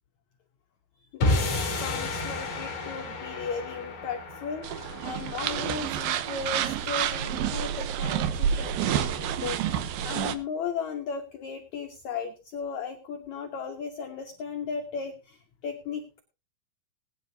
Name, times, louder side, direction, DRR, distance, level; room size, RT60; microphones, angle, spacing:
voice 1, 1.1-4.7 5.0-16.2, left 6 dB, 90° left, 5 dB, 1.6 m, -36 dB
sound 1, 1.2-7.6, left 2 dB, 45° left, 3.2 m, -32 dB
sound 2, 4.6-10.4, right 9 dB, 75° right, 2.4 m, -29 dB
20.5 x 9.9 x 2.7 m, 0.32 s
omnidirectional pair, 4.9 m